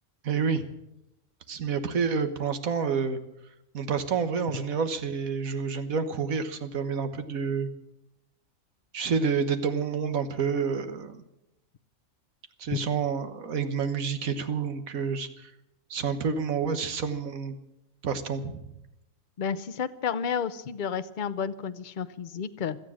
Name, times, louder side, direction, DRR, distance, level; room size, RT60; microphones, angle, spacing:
voice 1, 0.2-0.7 1.5-3.2 3.7-7.7 8.9-11.2 12.6-15.5 15.9-17.6 18.0-18.7, right 6 dB, 85° right, 10 dB, 1.7 m, -29 dB
voice 2, 19.4-22.8, left 7 dB, 45° left, 13 dB, 0.7 m, -31 dB
17.0 x 12.5 x 6.3 m, 0.85 s
omnidirectional pair, 1.4 m